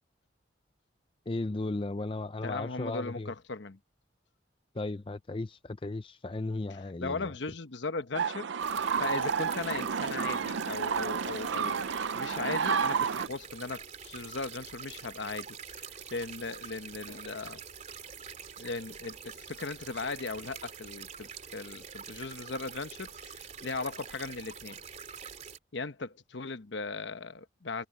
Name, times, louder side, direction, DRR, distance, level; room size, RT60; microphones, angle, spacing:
voice 1, 1.3-3.3 4.7-7.3, left 2 dB, 25° left, 0.5 m, -35 dB
voice 2, 2.4-3.8 6.7-8.5 9.0-11.9 12.1-17.6 18.6-24.8 25.7-27.9, left 3 dB, 70° left, 1.0 m, -38 dB
sound 1, 8.1-13.3, right 6 dB, 70° right, 0.5 m, -30 dB
sound 2, 8.6-25.6, right 7 dB, 40° right, 3.1 m, -46 dB
head